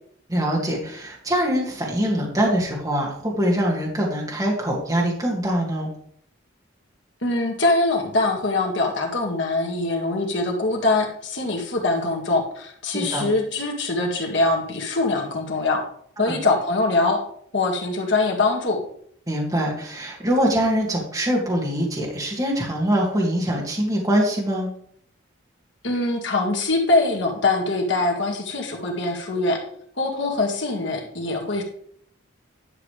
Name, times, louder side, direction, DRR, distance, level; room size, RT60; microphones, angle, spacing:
voice 1, 0.3-5.9 12.9-13.3 16.3-16.4 19.3-24.7, equal, 15° right, -3 dB, 2.2 m, -23 dB
voice 2, 7.2-15.8 16.2-17.2 17.5-18.8 25.8-29.6 30.0-31.6, left 2 dB, 65° left, 0 dB, 1.9 m, -23 dB
11.0 x 7.0 x 3.3 m, 0.65 s
head